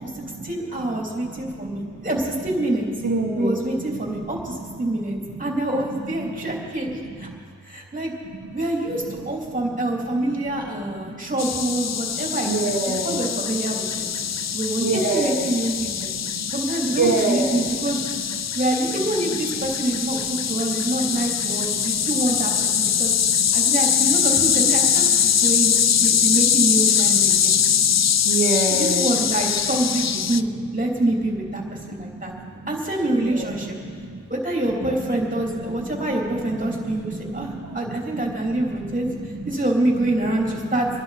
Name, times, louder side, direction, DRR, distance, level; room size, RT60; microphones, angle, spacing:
voice 1, 0.4-2.9 3.3-7.3 7.7-8.1 8.5-14.1 14.5-16.1 16.5-18.0 18.5-22.5 22.8-23.1 23.5-27.5 28.7-30.5 30.7-31.6 31.9-32.3 32.7-33.8 34.3-39.1 39.4-40.9, right 1 dB, 25° right, -2 dB, 3.4 m, -26 dB
voice 2, 1.2-1.8 3.0-3.6 3.9-4.2 4.8-5.4 5.9-6.5 7.3-7.4 8.3-8.4 11.0-11.1 12.4-13.2 14.1-14.3 14.8-15.4 15.9-16.5 16.9-17.7 20.3-22.0 22.5-23.5 25.6-25.7 26.2-26.4 27.2-29.1 31.6-32.5 33.3-34.2 35.1-35.4 35.7-35.9 36.5-39.5 40.6-40.7, right 3 dB, 65° right, -1 dB, 1.5 m, -29 dB
sound 1, 11.4-30.4, left 8 dB, 55° left, 0.4 m, -22 dB
23.5 x 11.0 x 4.3 m, 2.1 s
wide cardioid pair, 55°, 32 cm